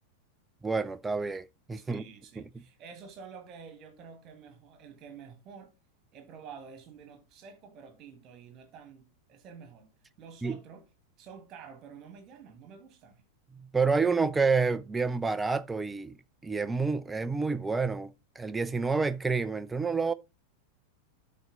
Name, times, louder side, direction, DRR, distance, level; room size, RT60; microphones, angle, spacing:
voice 1, 0.6-2.0 2.5-2.6 10.4-10.6 13.5-16.2 16.4-20.1, right 4 dB, 10° right, 0.5 m, -29 dB
voice 2, 1.8-5.7 6.1-9.9 10.2-10.8 11.2-13.2, right 6 dB, 35° right, 1.9 m, -49 dB
12.0 x 4.3 x 4.0 m
figure-of-eight pair, 90°, 0 cm